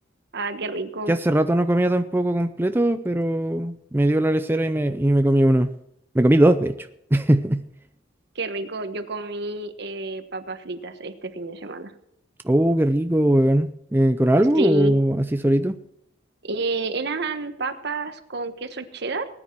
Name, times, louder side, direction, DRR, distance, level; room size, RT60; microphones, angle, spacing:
voice 1, 0.3-1.1 8.3-11.9 14.6-15.0 16.4-19.3, right 2 dB, 60° right, 9 dB, 1.2 m, -29 dB
voice 2, 1.1-5.7 6.1-6.7 7.1-7.6 12.4-15.7, right 1 dB, 10° right, 8 dB, 0.5 m, -20 dB
19.5 x 10.0 x 4.5 m, 0.76 s
head